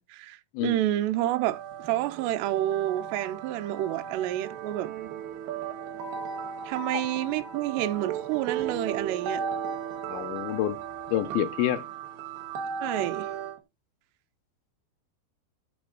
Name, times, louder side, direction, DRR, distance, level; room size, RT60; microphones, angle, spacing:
voice 1, 0.0-4.9 6.6-9.4 12.8-13.3, right 13 dB, 90° right, 2.8 m, -29 dB
sound 1, 1.2-13.6, right 7 dB, 70° right, 2.4 m, -36 dB
voice 2, 10.1-10.8 11.1-11.8, left 12 dB, 80° left, 2.4 m, -28 dB
11.0 x 4.1 x 3.8 m
omnidirectional pair, 4.8 m